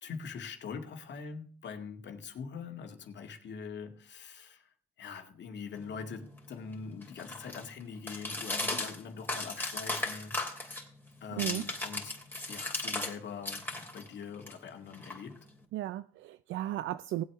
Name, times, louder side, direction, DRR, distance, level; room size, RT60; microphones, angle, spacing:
voice 1, 0.0-4.7 5.0-10.4 11.2-12.1 12.5-15.4, left 6 dB, 65° left, 2.1 m, -43 dB
sound 1, 5.8-13.2 13.4-15.6, left 2 dB, 10° left, 3.0 m, -37 dB
voice 2, 15.7-17.2, right 13 dB, 80° right, 0.5 m, -35 dB
19.0 x 8.0 x 3.5 m
cardioid pair, 90°, 20 cm